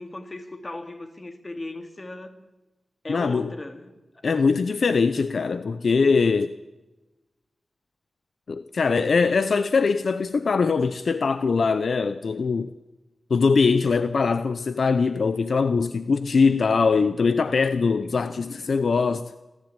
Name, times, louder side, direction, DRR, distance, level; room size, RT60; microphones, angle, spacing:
voice 1, 0.0-2.4 3.0-4.0, left 2 dB, 35° left, 2.5 m, -37 dB
voice 2, 3.1-3.5 4.2-6.5 8.5-12.7 13.3-19.2, left 4 dB, 70° left, 0.7 m, -22 dB
28.0 x 14.0 x 9.0 m
wide cardioid pair, 85°, 0 cm